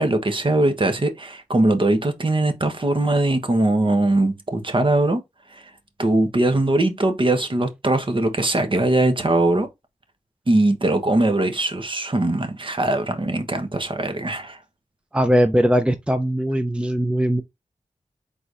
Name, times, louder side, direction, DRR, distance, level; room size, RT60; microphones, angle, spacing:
voice 1, 0.0-5.2 5.5-5.6 6.0-9.7 10.5-14.6, right 2 dB, 40° right, 1.1 m, -21 dB
voice 2, 15.1-17.4, equal, 10° right, 0.6 m, -20 dB
4.5 x 4.0 x 2.6 m
cardioid pair, 45°, 13 cm